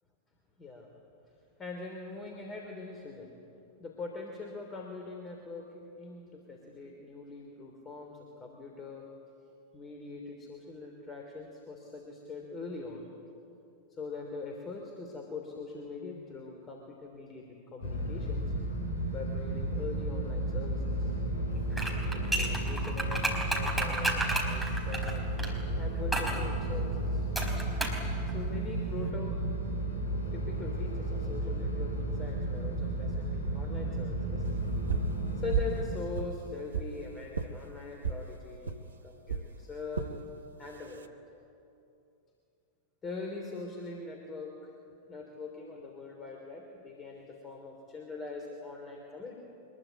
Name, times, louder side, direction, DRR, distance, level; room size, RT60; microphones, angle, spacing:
voice 1, 0.6-0.9 1.6-3.3 3.8-9.1 9.7-13.1 13.9-18.5 19.1-21.1 22.1-25.3 25.8-27.3 28.3-29.4 30.3-34.5 35.3-40.2 40.6-41.1 43.0-44.7 45.1-49.3, left 3 dB, 25° left, 2 dB, 3.3 m, -42 dB
sound 1, 17.8-35.8, right 1 dB, 55° left, 7.8 m, -33 dB
sound 2, 21.7-25.5 26.1-26.4 27.4-28.0 28.3-28.4, right 1 dB, ahead, 4.7 m, -32 dB
sound 3, 34.9-35.2 35.5-35.8 36.1-36.9 37.3-37.5 38.0-38.2 38.7-38.8 39.3-39.5 39.9-40.1 40.7-41.1, right 6 dB, 75° right, 1.2 m, -32 dB
24.5 x 22.5 x 9.3 m, 2.7 s
figure-of-eight pair, 90°, 0 cm